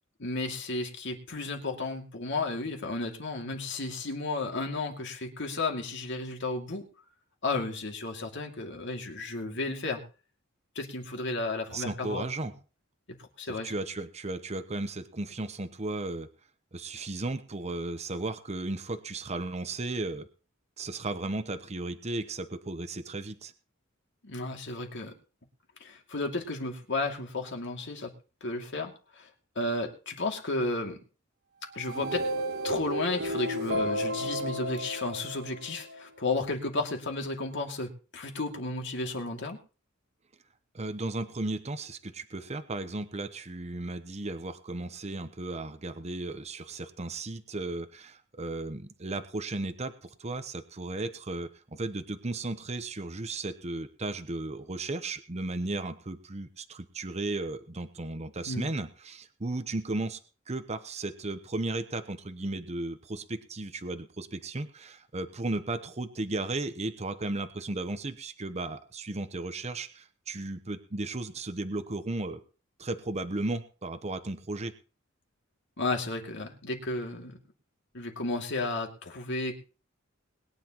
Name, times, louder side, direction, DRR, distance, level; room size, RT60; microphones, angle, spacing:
voice 1, 0.2-6.8 7.4-10.0 10.7-12.5 13.1-13.7 24.2-25.1 25.8-28.1 28.4-29.3 29.6-31.0 31.7-32.3 32.6-39.6 58.4-58.7 75.8-77.4 77.9-79.5, left 2 dB, 60° left, 2 dB, 2.5 m, -33 dB
voice 2, 11.7-12.5 13.5-16.3 16.7-20.3 20.8-23.5 40.7-60.2 60.5-72.4 72.8-74.7, right 2 dB, 30° right, 9 dB, 0.9 m, -35 dB
sound 1, 31.7-36.0, equal, 50° right, 1.3 m, -33 dB
21.5 x 10.0 x 3.0 m, 0.35 s
head